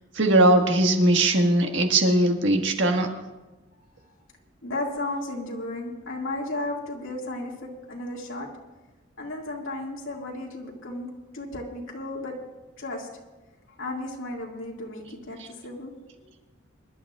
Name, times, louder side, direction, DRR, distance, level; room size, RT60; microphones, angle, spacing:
voice 1, 0.1-3.1 15.4-15.5, right 2 dB, 65° right, 3 dB, 1.6 m, -20 dB
voice 2, 4.6-8.5 9.2-12.4 12.8-13.1 13.8-15.9 16.2-16.3, left 2 dB, 75° left, -2 dB, 2.1 m, -34 dB
25.0 x 11.5 x 2.4 m, 1.2 s
head